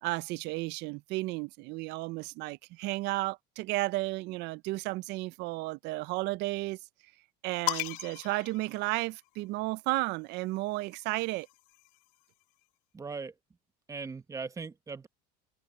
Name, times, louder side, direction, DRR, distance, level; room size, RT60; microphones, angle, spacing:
voice 1, 0.0-6.8 7.4-11.5, right 21 dB, 55° right, 0.4 m, -33 dB
sound 1, 7.7-9.5 10.6-12.2, left 21 dB, 80° left, 2.1 m, -38 dB
voice 2, 12.9-13.3 13.9-15.1, right 4 dB, 15° right, 1.0 m, -39 dB
supercardioid pair, 125°, 21 cm